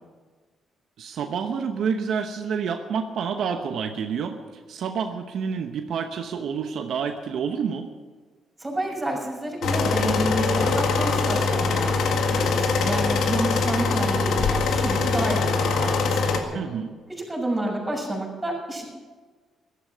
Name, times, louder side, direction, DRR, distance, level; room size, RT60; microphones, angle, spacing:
voice 1, 1.0-7.9 16.5-17.0, right 6 dB, 70° right, 5 dB, 1.0 m, -28 dB
voice 2, 8.6-16.6 17.1-18.8, right 1 dB, 15° right, -2 dB, 6.5 m, -29 dB
sound 1, 9.6-16.4, left 4 dB, 75° left, 1.8 m, -23 dB
15.0 x 13.0 x 6.3 m, 1.4 s
cardioid pair, 90°, 0 cm